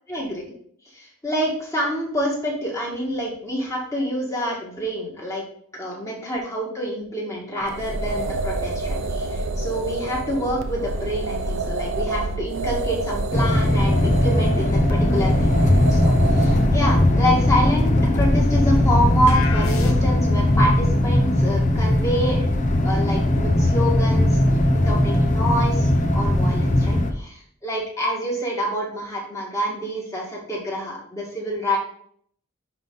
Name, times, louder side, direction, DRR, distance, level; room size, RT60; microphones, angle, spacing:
voice 1, 0.1-0.4 0.9-5.4 5.7-22.6 22.8-24.4 24.8-31.8, equal, 15° left, -3 dB, 2.1 m, -27 dB
sound 1, 7.6-16.7, right 2 dB, 70° right, 0.7 m, -28 dB
sound 2, 13.3-27.1, left 1 dB, 35° left, 0.8 m, -19 dB
sound 3, 19.3-20.4, left 3 dB, 80° left, 1.0 m, -29 dB
10.5 x 4.0 x 3.9 m, 0.63 s
head